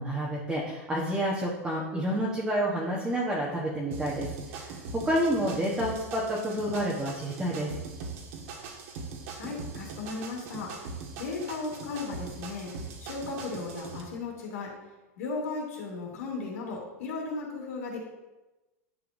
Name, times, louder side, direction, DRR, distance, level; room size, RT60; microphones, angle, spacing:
voice 1, 0.0-7.7, equal, 10° right, -5 dB, 1.2 m, -29 dB
sound 1, 3.9-14.0, right 4 dB, 60° right, 1.6 m, -41 dB
voice 2, 9.3-10.9 11.2-12.7 13.0-14.7 15.2-18.0, left 3 dB, 75° left, -2 dB, 2.8 m, -36 dB
10.5 x 6.8 x 2.7 m, 1.1 s
supercardioid pair, 145°, 8 cm